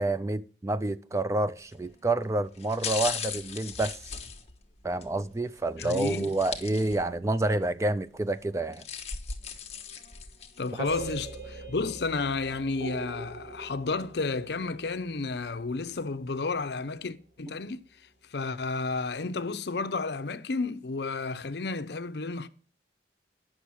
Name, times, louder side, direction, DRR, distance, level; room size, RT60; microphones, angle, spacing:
voice 1, 0.0-4.0 4.8-8.8 10.8-10.9, right 2 dB, 15° right, 0.4 m, -28 dB
sound 1, 1.6-1.9 2.5-5.1 5.8-7.2 7.6-7.7 8.5-10.7 11.2-11.3, left 7 dB, 35° left, 1.2 m, -37 dB
voice 2, 5.8-6.3 10.6-17.8 18.3-22.5, left 3 dB, 65° left, 0.6 m, -32 dB
sound 2, 10.9-16.6, right 3 dB, 55° right, 2.6 m, -42 dB
9.9 x 6.2 x 6.2 m
head